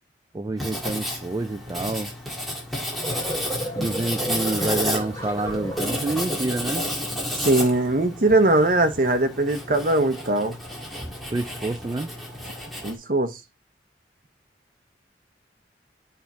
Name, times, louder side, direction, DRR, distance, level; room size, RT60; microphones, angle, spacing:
voice 1, 0.3-2.1 3.8-6.8 11.3-12.1, right 2 dB, 20° right, 0.3 m, -28 dB
Writing, 0.6-13.0, equal, ahead, 1.7 m, -31 dB
sound 1, 2.9-6.6, equal, 15° left, 2.8 m, -33 dB
voice 2, 7.4-10.6 12.8-13.4, right 2 dB, 50° right, 1.0 m, -21 dB
8.8 x 3.6 x 4.2 m
head